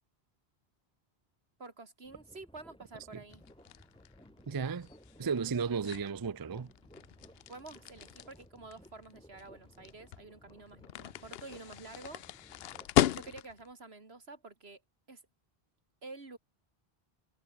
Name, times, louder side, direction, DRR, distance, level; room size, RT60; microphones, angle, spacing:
voice 1, 1.6-3.4 7.5-12.2 13.1-14.8 15.1-15.2 16.0-16.4, right 3 dB, 80° right, 3.1 m, -49 dB
sound 1, 2.0-13.4, equal, 5° left, 4.0 m, -59 dB
sound 2, 3.3-13.7, left 12 dB, 75° left, 0.8 m, -37 dB
voice 2, 4.5-4.9 5.2-6.7, right 5 dB, 30° right, 0.4 m, -34 dB
omnidirectional pair, 1.0 m